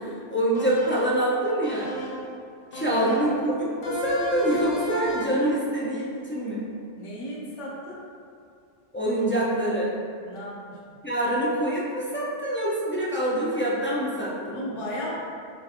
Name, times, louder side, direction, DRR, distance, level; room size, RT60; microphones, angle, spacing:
voice 1, 0.0-1.9 2.7-6.6 8.9-9.9 11.0-14.6, right 1 dB, 20° left, -7 dB, 0.3 m, -25 dB
sound 1, 0.5-1.2 1.6-2.3 2.7-3.4 3.8-5.5, left 2 dB, 55° left, 0.8 m, -33 dB
voice 2, 7.0-8.0 10.3-10.7 14.5-15.2, equal, 85° left, -5 dB, 1.2 m, -35 dB
6.4 x 2.4 x 2.9 m, 2.4 s
omnidirectional pair, 1.2 m